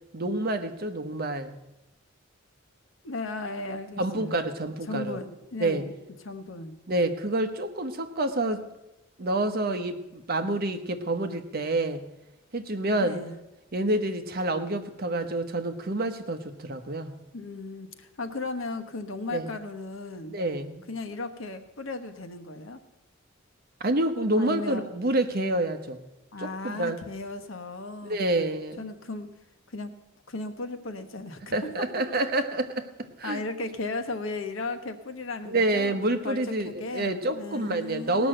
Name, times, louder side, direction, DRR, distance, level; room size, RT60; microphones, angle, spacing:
voice 1, 0.1-1.5 4.0-5.2 5.6-5.8 6.9-8.6 9.2-12.0 12.5-13.2 13.7-17.1 19.3-19.5 20.3-20.8 23.8-26.0 26.4-27.0 28.0-28.9 31.5-33.4 35.5-38.3, right 2 dB, 50° right, 8 dB, 1.0 m, -28 dB
voice 2, 3.0-4.4 4.9-5.9 6.2-6.7 13.0-13.4 17.3-20.3 20.9-22.8 24.4-24.8 26.3-28.2 28.8-29.3 29.7-29.9 30.3-32.0 33.2-38.3, left 2 dB, 85° left, 7 dB, 1.1 m, -36 dB
18.0 x 6.2 x 7.7 m, 0.98 s
head